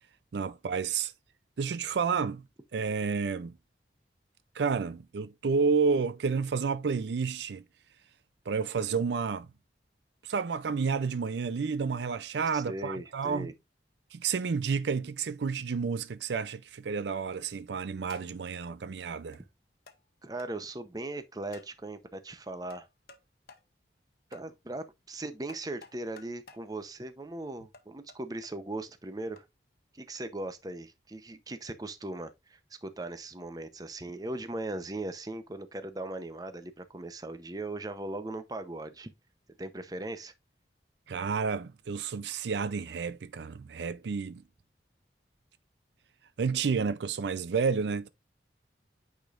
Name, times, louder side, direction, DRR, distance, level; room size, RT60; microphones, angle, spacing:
voice 1, 0.3-1.1 1.6-2.4 2.7-3.5 4.5-7.6 8.5-9.5 10.2-13.5 14.1-19.4 41.1-44.4 46.4-48.1, right 5 dB, 80° right, 0.4 m, -30 dB
voice 2, 12.5-13.5 20.2-22.9 24.3-29.4 29.9-39.1 39.6-40.3, right 2 dB, 20° right, 0.7 m, -39 dB
sound 1, 17.2-17.5 18.1-18.5 19.3-19.4 19.9-20.0 20.4-20.5 21.5-21.8 22.7-23.2 23.5-23.7 24.3-24.5 25.5-26.7 27.7-28.5 29.4-29.5 30.2-30.3, left 4 dB, 55° left, 1.0 m, -54 dB
8.9 x 5.1 x 2.5 m
head